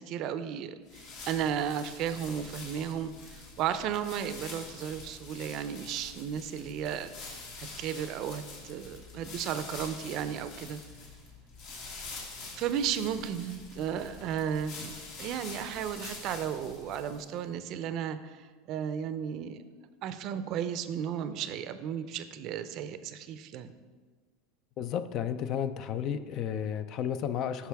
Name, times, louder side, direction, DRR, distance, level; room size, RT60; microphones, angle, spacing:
voice 1, 0.0-10.8 12.5-19.6 20.0-23.7, right 8 dB, 50° right, 12 dB, 0.5 m, -34 dB
sound 1, 0.9-17.4, left 3 dB, 65° left, 2.0 m, -46 dB
voice 2, 24.8-27.7, left 9 dB, 50° left, 12 dB, 0.4 m, -32 dB
9.6 x 6.1 x 3.5 m, 1.5 s
supercardioid pair, 125°, 0 cm